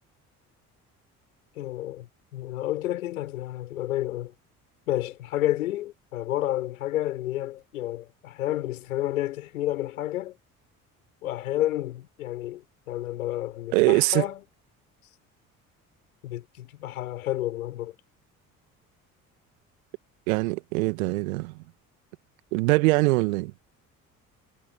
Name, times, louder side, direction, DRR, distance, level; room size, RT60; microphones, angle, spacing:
voice 1, 1.6-4.3 4.9-10.4 11.2-14.5 16.2-18.0, left 14 dB, 75° left, 6.9 m, -30 dB
voice 2, 13.7-14.3 20.3-21.5 22.5-23.5, right 23 dB, 70° right, 2.2 m, -22 dB
figure-of-eight pair, 50°, 43 cm